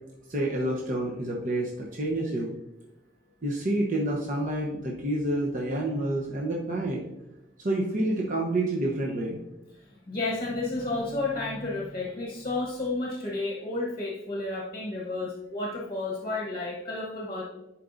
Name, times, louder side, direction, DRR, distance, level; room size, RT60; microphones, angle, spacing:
voice 1, 0.3-2.5 3.4-7.0 7.6-9.4, right 1 dB, 45° right, -2 dB, 0.9 m, -28 dB
voice 2, 10.1-17.4, left 2 dB, 30° left, -1 dB, 1.1 m, -31 dB
11.0 x 4.6 x 2.6 m, 0.93 s
head